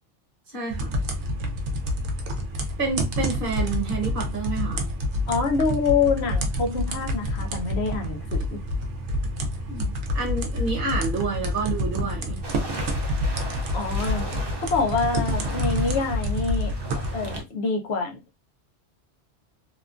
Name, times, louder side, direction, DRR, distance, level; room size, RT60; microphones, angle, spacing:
voice 1, 0.5-1.0 2.8-4.9 9.7-12.4, right 4 dB, 50° right, 1.1 m, -29 dB
sound 1, 0.7-17.4, left 1 dB, 85° right, 0.9 m, -28 dB
voice 2, 5.3-8.6 13.7-14.2 14.6-18.2, left 4 dB, 70° left, 0.9 m, -26 dB
sound 2, 12.4-17.4, right 1 dB, 35° right, 0.4 m, -38 dB
2.8 x 2.2 x 2.4 m
omnidirectional pair, 1.2 m